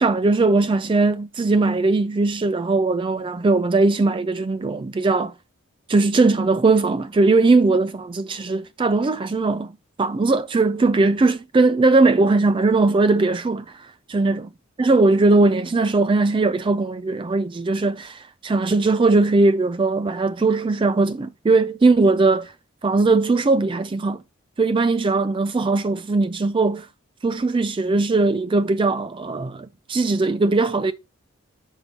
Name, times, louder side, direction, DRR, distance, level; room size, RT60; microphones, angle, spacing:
voice 1, 0.0-5.3 5.9-9.7 10.0-13.6 14.1-14.5 14.8-22.5 22.8-24.2 24.6-26.9 27.2-30.9, right 3 dB, 25° right, 0.3 m, -19 dB
9.6 x 5.5 x 2.8 m
head